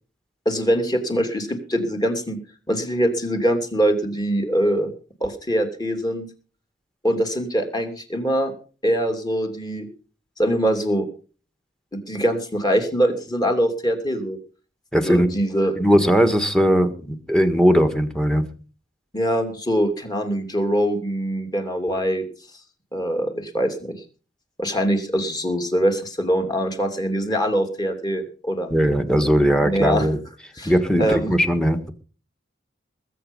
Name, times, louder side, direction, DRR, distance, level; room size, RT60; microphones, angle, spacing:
voice 1, 0.4-2.4 2.7-4.9 5.2-6.3 7.0-8.5 8.8-9.9 10.4-11.1 11.9-14.4 15.0-15.7 19.1-22.3 22.9-24.0 24.6-28.7 29.6-30.1 30.6-30.7 31.0-31.3, equal, 20° left, 4 dB, 2.8 m, -23 dB
voice 2, 14.9-15.3 15.8-18.4 28.7-30.2 30.6-31.9, equal, 5° left, 9 dB, 1.5 m, -19 dB
20.5 x 8.3 x 5.4 m, 0.38 s
head